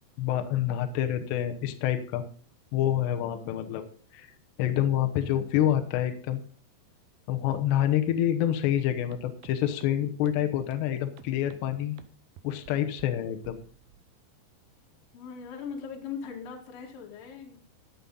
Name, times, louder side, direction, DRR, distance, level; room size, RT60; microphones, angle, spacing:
voice 1, 0.2-2.2 2.7-3.8 4.6-6.4 7.3-12.0 12.4-13.6, left 11 dB, 75° left, 6 dB, 3.1 m, -27 dB
voice 2, 3.4-3.8 15.1-17.6, left 6 dB, 55° left, 1 dB, 3.3 m, -40 dB
sound 1, 9.1-9.2 9.4-9.5 9.8-9.9 10.3-10.4 10.7-10.8 11.2-11.6 12.0-12.1 12.4-12.7 13.0-13.1 13.4-13.9, right 11 dB, 75° right, 2.3 m, -50 dB
14.0 x 8.9 x 3.9 m, 0.43 s
omnidirectional pair, 5.3 m